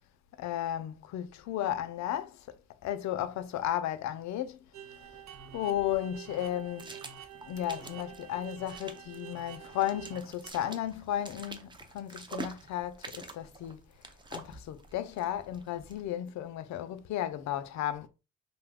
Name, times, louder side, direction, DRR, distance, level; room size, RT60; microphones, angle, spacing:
voice 1, 0.4-2.4 2.8-4.6 5.5-6.9 7.5-13.8 14.3-18.1, left 11 dB, 65° left, 0.4 m, -34 dB
sound 1, 4.7-10.5, right 9 dB, 70° right, 0.6 m, -48 dB
sound 2, 5.0-16.1, right 3 dB, 15° right, 0.4 m, -48 dB
2.6 x 2.2 x 3.4 m
cardioid pair, 90°, 30 cm